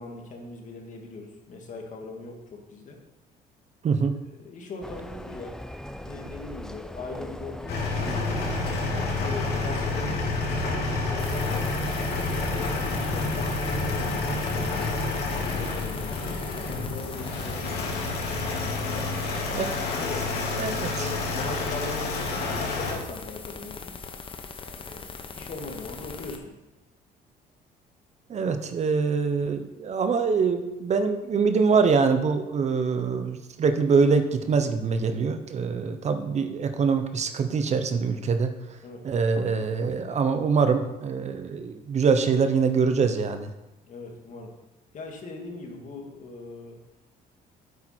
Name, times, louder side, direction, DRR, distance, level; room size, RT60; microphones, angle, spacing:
voice 1, 0.0-3.0 4.4-5.6 6.0-8.1 8.7-11.7 12.4-17.8 18.7-19.3 19.9-24.0 24.8-26.5 38.8-39.0 43.8-44.5 44.9-46.8, left 3 dB, 50° left, 2 dB, 2.2 m, -40 dB
voice 2, 3.8-4.2 19.5-19.9 20.6-21.1 28.3-38.5 39.0-43.5, right 5 dB, 40° right, 9 dB, 0.9 m, -24 dB
sound 1, 4.8-13.2, left 1 dB, 5° left, 0.5 m, -39 dB
sound 2, 7.7-22.9, left 3 dB, 70° left, 2.5 m, -29 dB
sound 3, 11.2-26.4, left 5 dB, 30° left, 1.0 m, -40 dB
9.6 x 8.3 x 4.5 m, 1.0 s
cardioid pair, 110°, 17 cm